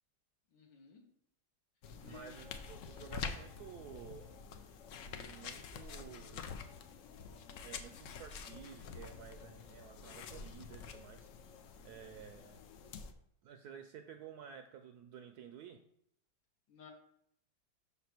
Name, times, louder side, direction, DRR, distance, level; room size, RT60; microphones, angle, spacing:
voice 1, 0.5-1.0 2.0-2.3 13.6-13.7 16.7-16.9, left 6 dB, 90° left, 0 dB, 1.9 m, -56 dB
sound 1, 1.8-13.1, left 6 dB, 70° left, 0.7 m, -47 dB
voice 2, 2.0-4.4 5.1-6.5 7.6-11.3 11.8-12.6 13.4-15.8, right 8 dB, 70° right, 6 dB, 1.0 m, -52 dB
5.9 x 4.1 x 5.9 m, 0.69 s
omnidirectional pair, 1.9 m